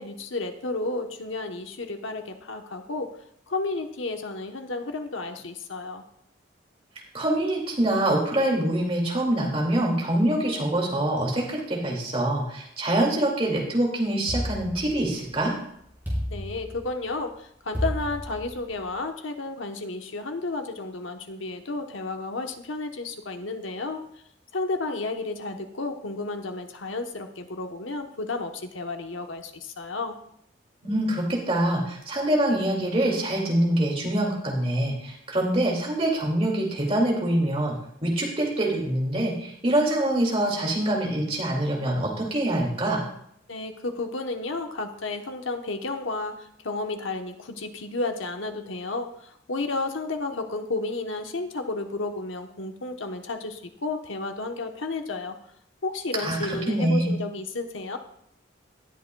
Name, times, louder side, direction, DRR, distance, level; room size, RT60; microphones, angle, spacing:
voice 1, 0.0-3.1 3.5-6.0 16.3-24.0 24.5-30.2 43.5-55.4 55.8-58.0, left 3 dB, 85° left, 5 dB, 1.0 m, -32 dB
voice 2, 7.1-15.5 30.8-37.8 38.0-43.0 56.2-57.1, right 1 dB, 30° right, -1 dB, 2.3 m, -25 dB
sound 1, 14.3-15.4 16.0-17.1 17.7-18.9, equal, 10° right, 4.7 m, -32 dB
18.5 x 8.3 x 2.3 m, 0.71 s
head